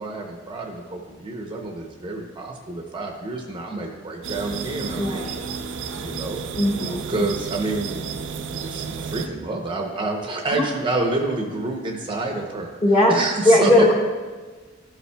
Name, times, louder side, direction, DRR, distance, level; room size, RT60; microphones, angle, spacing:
voice 1, 0.0-5.5 5.7-6.4 7.1-8.1 8.6-12.8 13.1-13.7, right 2 dB, 25° right, 1 dB, 0.6 m, -28 dB
sound 1, 4.2-9.3, right 5 dB, 70° right, 0.4 m, -32 dB
voice 2, 5.0-5.5 6.6-7.2 10.5-10.7 12.8-13.1 13.4-13.9, left 1 dB, 35° left, -3 dB, 1.4 m, -18 dB
12.0 x 5.4 x 2.2 m, 1.4 s
head